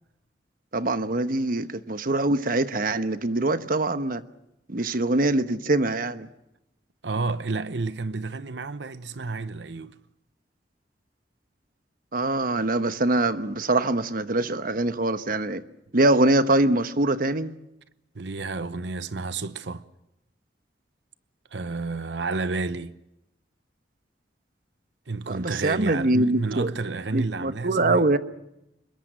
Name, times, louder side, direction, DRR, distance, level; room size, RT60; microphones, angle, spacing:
voice 1, 0.7-4.2 4.7-6.3 12.1-15.6 15.9-17.5 25.3-26.7 27.1-28.2, right 2 dB, 55° right, 1.1 m, -23 dB
voice 2, 7.0-10.0 18.1-19.8 21.5-22.9 25.1-28.2, right 3 dB, 80° right, 0.9 m, -30 dB
25.5 x 22.0 x 7.7 m
head